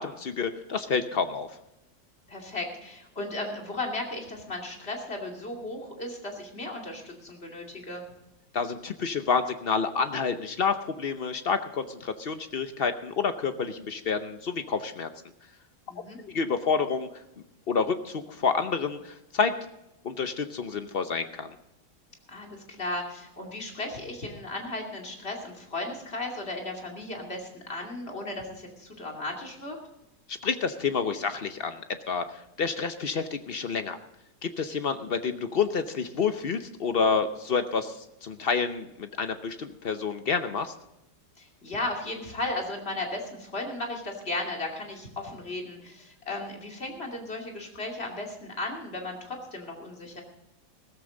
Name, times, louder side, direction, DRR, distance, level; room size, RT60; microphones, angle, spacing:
voice 1, 0.0-1.5 8.5-15.1 16.2-17.1 17.7-19.5 20.0-21.5 30.3-31.8 32.1-32.2 32.6-34.0 34.4-37.9 38.2-40.7, left 5 dB, 60° left, 9 dB, 0.6 m, -28 dB
voice 2, 2.3-8.0 15.9-16.2 22.3-29.8 41.4-50.2, left 2 dB, 30° left, 1 dB, 2.8 m, -35 dB
16.0 x 14.0 x 3.8 m, 0.88 s
omnidirectional pair, 2.0 m